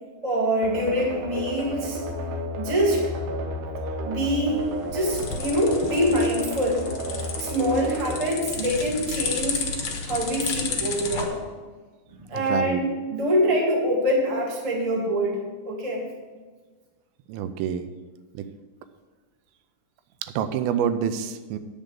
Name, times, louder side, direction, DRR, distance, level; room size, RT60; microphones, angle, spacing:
voice 1, 0.2-2.0 2.5-3.3 4.0-6.8 7.4-9.6 10.0-11.4 12.1-15.4 15.6-16.1, equal, 25° right, -2 dB, 0.8 m, -25 dB
sound 1, 0.6-9.3, equal, 70° right, 2.4 m, -33 dB
sound 2, 4.5-11.3, left 5 dB, 75° left, 1.2 m, -32 dB
voice 2, 12.4-12.8 17.3-17.9 18.3-18.4 20.2-21.6, right 8 dB, 85° right, 10 dB, 2.4 m, -27 dB
9.0 x 5.1 x 7.5 m, 1.4 s
omnidirectional pair, 4.1 m